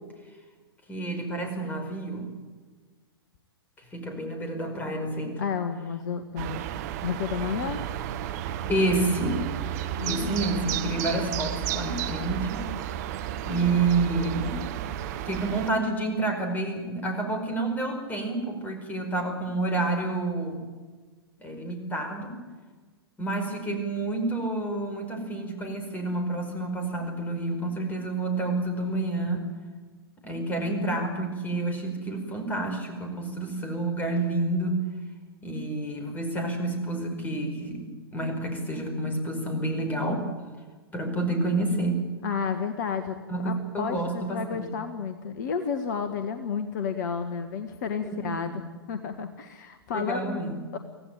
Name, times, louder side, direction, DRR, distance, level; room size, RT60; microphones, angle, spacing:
voice 1, 0.9-2.3 3.9-5.4 8.7-9.4 10.0-12.7 13.5-14.6 15.2-20.6 21.4-22.4 23.2-29.5 30.2-34.8 35.4-40.3 40.9-42.0 43.3-44.7 48.0-48.5 49.9-50.6, right 2 dB, 10° left, 5 dB, 5.2 m, -29 dB
voice 2, 5.4-6.6 7.0-7.8 10.0-10.4 42.2-43.2 43.4-48.6 48.9-50.8, left 6 dB, 45° left, 9 dB, 1.6 m, -31 dB
sound 1, 6.4-15.7, right 11 dB, 40° right, 1.2 m, -32 dB
25.0 x 17.0 x 9.2 m, 1.4 s
figure-of-eight pair, 105°, 13 cm